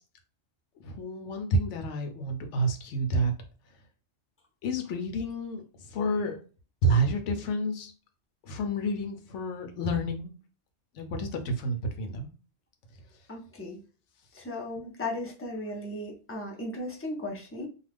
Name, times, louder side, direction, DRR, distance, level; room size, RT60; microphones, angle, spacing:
voice 1, 0.8-3.3 4.6-6.4 6.8-7.9 8.4-10.3 10.9-12.3, right 1 dB, 75° left, 5 dB, 1.0 m, -29 dB
voice 2, 13.3-13.8 14.3-17.7, left 1 dB, 20° left, -1 dB, 0.4 m, -36 dB
2.4 x 2.3 x 3.3 m, 0.36 s
omnidirectional pair, 1.2 m